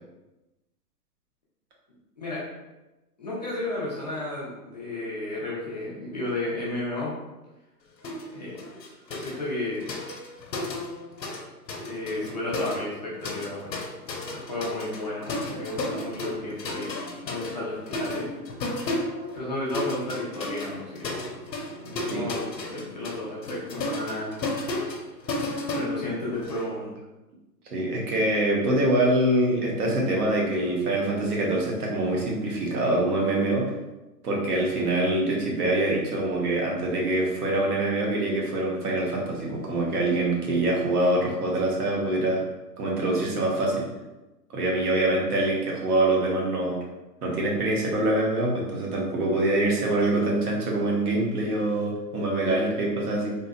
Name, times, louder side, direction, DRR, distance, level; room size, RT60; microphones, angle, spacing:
voice 1, 3.2-7.1 8.3-8.5 9.1-9.9 11.9-13.8 14.3-16.9 17.2-18.3 19.3-21.3 21.7-24.5 25.7-26.9, left 2 dB, 30° left, -7 dB, 0.4 m, -33 dB
sound 1, 8.0-8.3 8.6-11.4 11.7-26.6, left 2 dB, 80° left, 1.0 m, -33 dB
voice 2, 21.8-22.2 27.7-33.6 34.2-42.4 42.8-43.9 44.5-46.8 47.2-53.3, right 1 dB, 65° right, -2 dB, 1.2 m, -25 dB
3.5 x 2.7 x 2.2 m, 1.0 s
hypercardioid pair, 140°, 50 cm